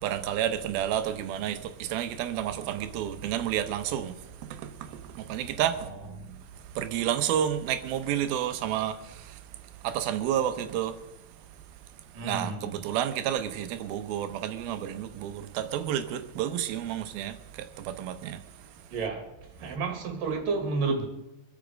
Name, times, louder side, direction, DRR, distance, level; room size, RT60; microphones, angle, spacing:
voice 1, 0.0-4.2 4.5-5.9 6.8-9.4 9.8-11.0 12.2-18.4, right 10 dB, 85° right, 2.8 m, -30 dB
voice 2, 5.8-6.3 12.1-12.7 18.9-19.3 19.6-21.1, right 4 dB, 65° right, 3.7 m, -31 dB
25.0 x 8.4 x 5.1 m
omnidirectional pair, 4.2 m